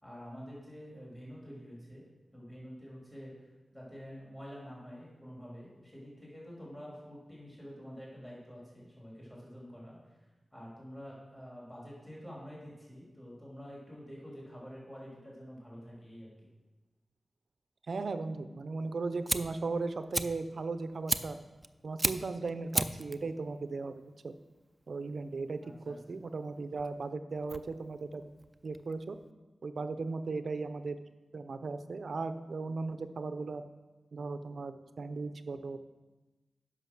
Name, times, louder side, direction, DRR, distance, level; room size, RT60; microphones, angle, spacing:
voice 1, 0.0-2.0 2.3-10.3 10.5-16.5 25.6-26.2, equal, 15° left, -5 dB, 3.1 m, -48 dB
voice 2, 17.9-21.4 21.8-24.3 24.9-28.2 28.6-29.2 29.6-31.0 31.3-33.6 34.1-35.8, right 3 dB, 70° right, 10 dB, 0.5 m, -37 dB
Fire, 18.8-29.3, right 1 dB, 20° right, 0.4 m, -37 dB
8.1 x 5.7 x 6.0 m, 1.2 s
cardioid pair, 60°, 0 cm